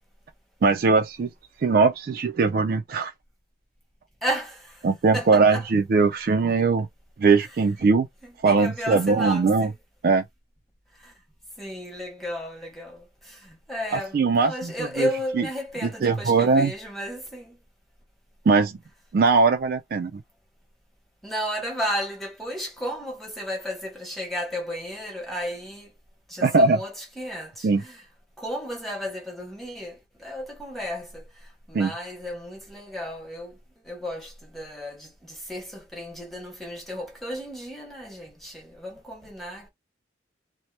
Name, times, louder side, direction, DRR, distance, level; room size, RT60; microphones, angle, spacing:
voice 1, 0.6-1.3 1.6-3.1 4.8-6.9 7.2-8.1 8.4-9.7 10.0-10.2 14.1-14.7 15.0-15.1 15.4-15.5 16.0-16.7 18.5-18.8 19.1-20.2 26.4-26.8 27.6-27.8 31.7-31.9, right 4 dB, 50° right, 0.3 m, -20 dB
voice 2, 4.2-4.8 5.1-5.7 7.4-7.5 8.2-9.7 11.0-11.1 11.6-17.6 21.2-25.9 26.3-28.1 28.4-31.3 31.7-33.6 33.8-39.7, equal, ahead, 0.9 m, -33 dB
2.8 x 2.0 x 3.2 m
head